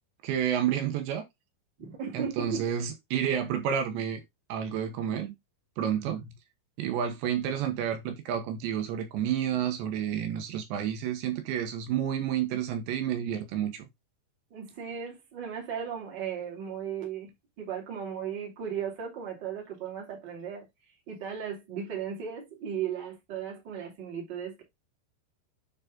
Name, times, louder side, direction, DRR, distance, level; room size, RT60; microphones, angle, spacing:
voice 1, 0.2-1.2 2.1-4.2 4.5-5.3 5.8-6.3 6.8-13.8, right 9 dB, 75° right, 3.3 m, -30 dB
voice 2, 1.8-2.6 14.5-20.7 21.1-24.6, right 7 dB, 30° right, 2.6 m, -36 dB
9.6 x 4.1 x 3.8 m
omnidirectional pair, 5.2 m